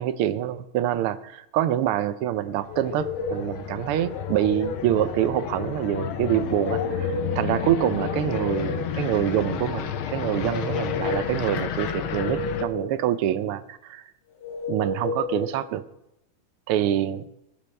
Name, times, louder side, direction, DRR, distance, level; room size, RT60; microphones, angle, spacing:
voice 1, 0.0-14.1 14.7-15.8 16.7-17.4, right 11 dB, 85° right, 14 dB, 1.6 m, -26 dB
sound 1, 2.4-12.6, left 9 dB, 75° left, 1.6 m, -31 dB
sound 2, 2.7-3.5 4.0-4.9 6.5-7.5 7.8-8.9 10.4-11.4 11.8-12.8 14.4-15.5, left 3 dB, 55° left, 2.7 m, -32 dB
19.0 x 10.0 x 3.3 m, 0.85 s
omnidirectional pair, 2.4 m